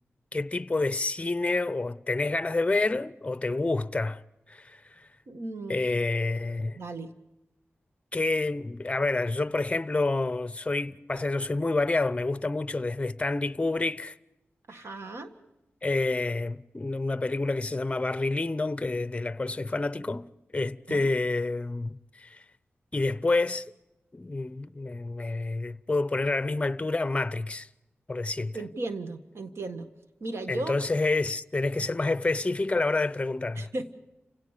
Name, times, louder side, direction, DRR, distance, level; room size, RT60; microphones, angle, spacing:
voice 1, 0.3-4.2 4.5-4.8 5.7-6.8 8.1-14.1 15.8-20.3 20.5-22.4 22.9-23.6 24.1-27.7 28.1-28.6 30.5-33.7, left 2 dB, 25° left, 0.7 m, -28 dB
voice 2, 5.3-5.8 6.8-7.1 14.7-15.3 20.9-21.1 28.5-29.9 30.2-30.7 33.6-33.9, right 2 dB, 70° right, 1.7 m, -36 dB
29.5 x 17.0 x 5.1 m
wide cardioid pair, 70°, 5 cm